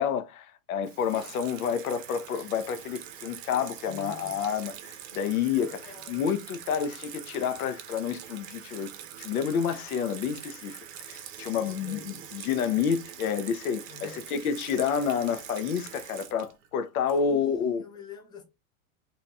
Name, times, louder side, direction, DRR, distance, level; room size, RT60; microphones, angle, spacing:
voice 1, 0.0-4.7 5.1-5.8 6.1-8.9 9.2-10.8 11.1-17.8, left 7 dB, 90° left, 0.7 m, -29 dB
Water tap faucet / Sink (filling or washing), 0.8-17.6, right 10 dB, 65° right, 0.6 m, -44 dB
voice 2, 3.9-4.4 5.6-6.3 11.6-12.3 13.9-14.2 17.2-18.4, left 6 dB, 10° left, 0.3 m, -47 dB
2.9 x 2.7 x 2.2 m
supercardioid pair, 140°, 42 cm